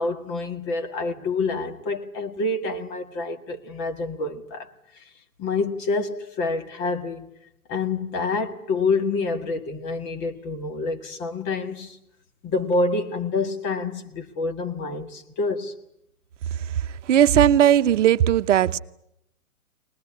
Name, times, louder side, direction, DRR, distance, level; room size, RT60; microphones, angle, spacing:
voice 1, 0.0-4.7 5.4-7.3 7.7-12.0 12.4-15.7, left 3 dB, 25° left, 2.0 m, -27 dB
voice 2, 17.1-18.8, right 10 dB, 55° right, 1.0 m, -17 dB
23.0 x 20.5 x 9.8 m
hypercardioid pair, 130°, 44 cm